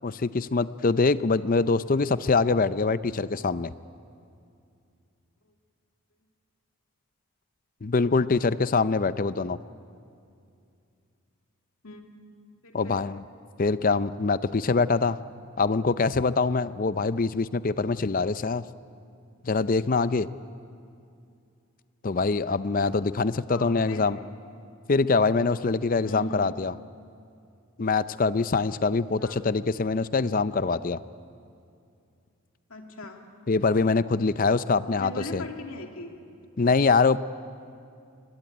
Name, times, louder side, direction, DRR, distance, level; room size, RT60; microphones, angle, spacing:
voice 1, 0.0-3.7 7.8-9.6 12.7-13.2 13.6-15.2 15.6-18.6 19.4-20.3 22.0-24.2 24.9-26.7 27.8-31.0 33.5-35.4 36.6-37.2, left 4 dB, 40° left, 15 dB, 0.5 m, -24 dB
voice 2, 11.8-12.2 12.6-13.0 23.5-24.1 26.0-26.4 29.2-29.4 32.7-33.2 34.8-36.2, left 1 dB, 70° left, 3 dB, 2.6 m, -40 dB
23.0 x 21.5 x 9.1 m, 2.5 s
head